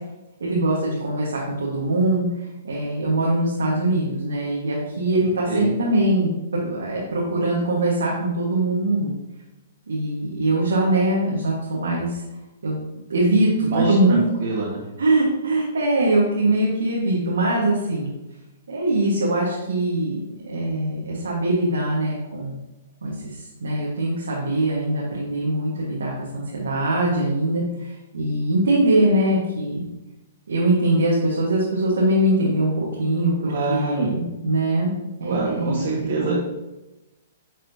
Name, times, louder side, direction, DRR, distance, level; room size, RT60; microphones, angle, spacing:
voice 1, 0.4-2.3 2.6-9.2 9.9-12.2 12.6-12.8 13.1-14.2 15.0-18.1 18.7-22.6 23.0-29.8 30.5-34.9 35.2-36.4, right 1 dB, 80° right, -4 dB, 1.4 m, -22 dB
voice 2, 13.7-14.8 33.5-34.1 35.3-36.4, right 3 dB, 60° right, -5 dB, 1.7 m, -24 dB
9.3 x 4.1 x 2.8 m, 1.0 s
hypercardioid pair, 125°, 0 cm